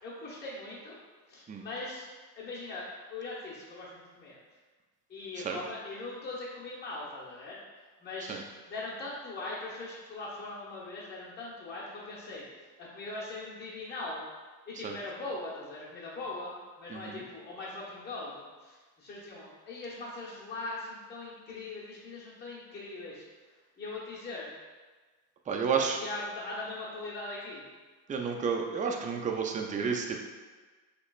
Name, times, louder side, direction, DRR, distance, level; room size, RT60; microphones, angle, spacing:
voice 1, 0.0-1.0 1.3-2.1 2.3-4.4 5.1-7.6 8.0-8.4 8.7-12.5 12.8-14.2 14.7-23.2 23.8-24.5 25.8-27.7, left 2 dB, 20° left, -8 dB, 1.1 m, -40 dB
voice 2, 16.9-17.2 25.5-26.0 28.1-30.2, right 6 dB, 20° right, 3 dB, 0.3 m, -31 dB
4.8 x 3.2 x 2.4 m, 1.4 s
supercardioid pair, 100°, 45 cm